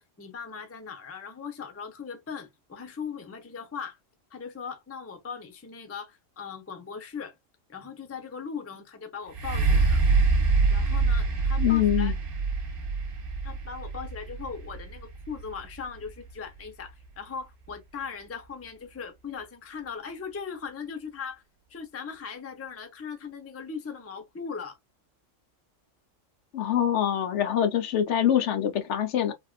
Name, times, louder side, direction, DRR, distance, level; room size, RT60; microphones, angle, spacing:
voice 1, 0.0-4.0 4.3-7.4 7.7-10.0 10.7-12.1 13.4-21.4 21.7-24.8, left 6 dB, 15° left, 0.5 m, -39 dB
sound 1, 9.3-17.1 17.7-17.8, right 4 dB, 50° right, 0.9 m, -26 dB
voice 2, 11.6-12.1 26.5-29.3, left 10 dB, 70° left, 0.9 m, -24 dB
3.5 x 2.3 x 2.2 m
omnidirectional pair, 1.3 m